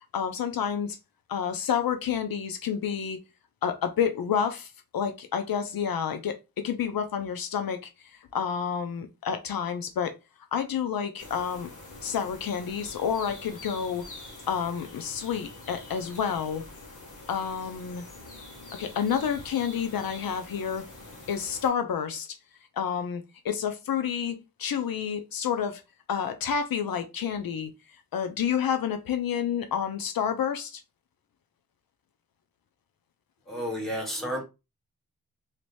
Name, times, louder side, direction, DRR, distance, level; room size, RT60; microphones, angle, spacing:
voice 1, 0.1-1.0 1.3-3.2 3.6-10.1 10.5-11.7 12.0-14.0 14.5-16.6 17.3-18.0 18.7-20.8 21.3-22.4 22.8-25.8 26.1-27.7 28.1-30.8, left 7 dB, 75° left, 0.5 m, -29 dB
sound 1, 11.2-21.7, left 2 dB, 55° left, 1.3 m, -45 dB
voice 2, 33.5-34.4, equal, ahead, 1.6 m, -31 dB
3.0 x 2.9 x 3.1 m
wide cardioid pair, 90°, 36 cm